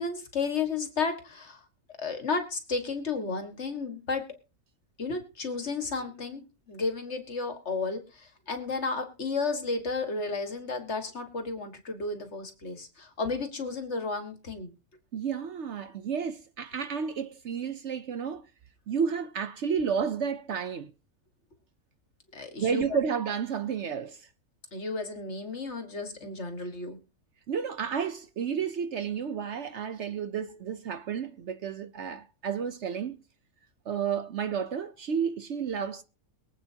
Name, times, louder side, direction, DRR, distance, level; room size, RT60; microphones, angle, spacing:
voice 1, 0.0-1.6 2.0-4.3 5.0-6.4 6.7-14.7 22.3-22.9 24.7-27.0, left 4 dB, 50° left, 2.0 m, -33 dB
voice 2, 15.1-18.5 18.9-20.9 22.6-24.3 27.5-33.2 33.9-36.0, right 7 dB, 60° right, 0.9 m, -31 dB
23.0 x 8.5 x 2.8 m
omnidirectional pair, 1.5 m